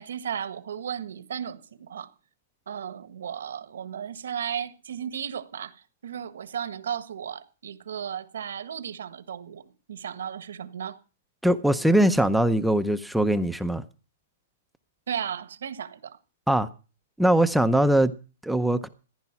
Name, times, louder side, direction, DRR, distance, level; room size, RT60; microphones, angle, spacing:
voice 1, 0.0-2.1 2.7-11.0 15.1-16.2, right 8 dB, 85° right, 1.4 m, -35 dB
voice 2, 11.4-13.8 16.5-16.7 17.2-18.1 18.4-18.9, right 1 dB, ahead, 0.6 m, -21 dB
15.0 x 10.5 x 5.9 m
hypercardioid pair, 160°, 0 cm